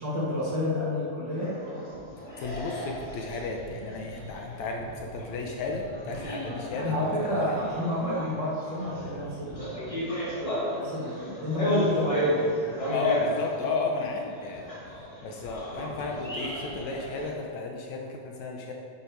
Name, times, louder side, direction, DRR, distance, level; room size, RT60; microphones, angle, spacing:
voice 1, 0.0-1.6 6.4-9.9 10.7-13.1, left 1 dB, 40° right, -6 dB, 2.0 m, -30 dB
sound 1, 1.4-17.3, equal, 35° left, 0.5 m, -34 dB
voice 2, 2.4-7.6 12.9-18.7, left 3 dB, 70° left, 1 dB, 2.0 m, -33 dB
10.0 x 8.3 x 4.6 m, 2.5 s
omnidirectional pair, 3.7 m